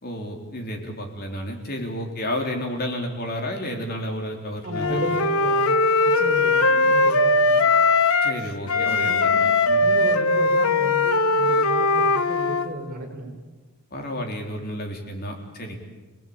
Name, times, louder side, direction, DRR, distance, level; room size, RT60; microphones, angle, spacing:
voice 1, 0.0-5.0 8.2-9.8 13.9-15.8, equal, 45° left, 2 dB, 3.8 m, -31 dB
voice 2, 4.6-7.7 8.7-13.3, right 1 dB, 40° right, 2 dB, 4.4 m, -34 dB
Wind instrument woodwind instrument, 4.7-8.4 8.7-12.7, left 3 dB, 70° left, 1.2 m, -20 dB
27.0 x 18.5 x 8.8 m, 1.2 s
head